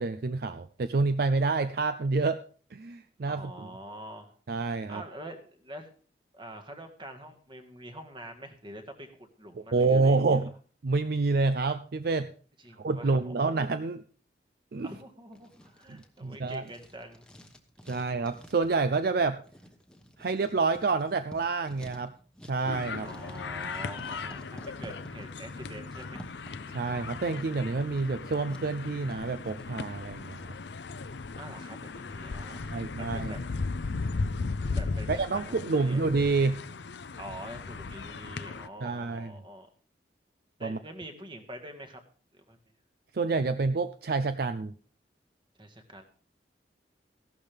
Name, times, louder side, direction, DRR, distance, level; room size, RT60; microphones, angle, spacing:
voice 1, 0.0-2.4 2.7-3.7 4.5-5.0 9.7-10.5 10.8-12.3 12.8-14.0 14.7-14.9 15.9-16.6 17.9-19.4 20.2-22.1 22.5-23.1 26.7-30.5 32.5-33.3 35.1-36.7 38.8-39.3 40.6-40.8 43.1-44.7, right 3 dB, 60° right, 11 dB, 0.5 m, -28 dB
voice 2, 3.2-4.4 4.9-5.9 6.3-10.4 12.6-13.6 14.8-17.2 23.0-26.2 31.3-33.4 34.7-36.0 37.1-39.7 40.6-42.0 42.3-42.6 45.6-46.1, right 1 dB, 30° right, 6 dB, 1.7 m, -45 dB
Writing, 15.3-29.7, equal, 5° left, 1.1 m, -51 dB
sound 1, 22.7-38.7, left 4 dB, 75° left, 0.6 m, -37 dB
15.0 x 12.0 x 3.4 m, 0.42 s
head